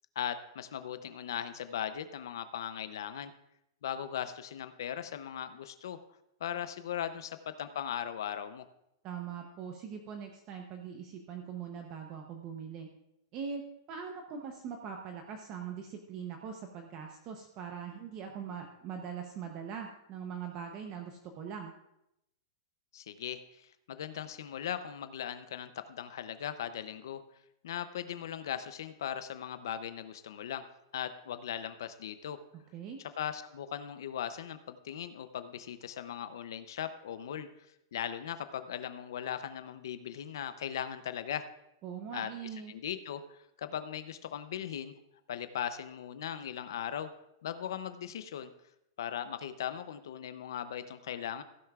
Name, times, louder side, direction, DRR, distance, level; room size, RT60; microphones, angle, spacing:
voice 1, 0.2-3.3 3.8-6.0 6.4-8.6 22.9-27.2 27.6-30.7 30.9-32.4 33.2-37.5 37.9-41.5 42.1-42.3 42.7-44.9 45.3-47.1 47.4-48.5 49.0-51.4, left 9 dB, 60° left, 11 dB, 0.6 m, -38 dB
voice 2, 9.0-12.9 13.3-21.7 32.7-33.0 41.8-42.7, right 7 dB, 25° right, 3 dB, 0.8 m, -42 dB
15.5 x 10.5 x 2.4 m, 0.83 s
supercardioid pair, 180°, 2 cm